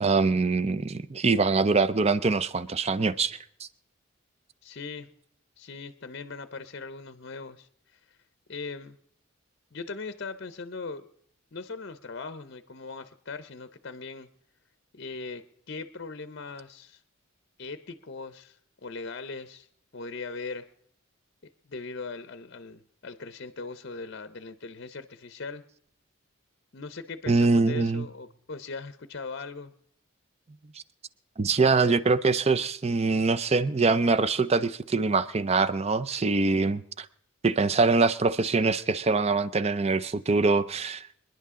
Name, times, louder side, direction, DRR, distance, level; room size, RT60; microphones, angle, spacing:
voice 1, 0.0-3.4 27.3-28.1 31.4-37.1 37.4-41.2, right 3 dB, 30° right, 0.5 m, -24 dB
voice 2, 4.6-5.1 5.6-8.2 8.5-9.0 9.7-11.1 11.5-14.3 14.9-17.0 17.6-18.6 18.8-19.7 19.9-20.7 21.6-25.6 26.7-29.7, left 4 dB, 50° left, 0.7 m, -39 dB
27.0 x 10.5 x 3.7 m
head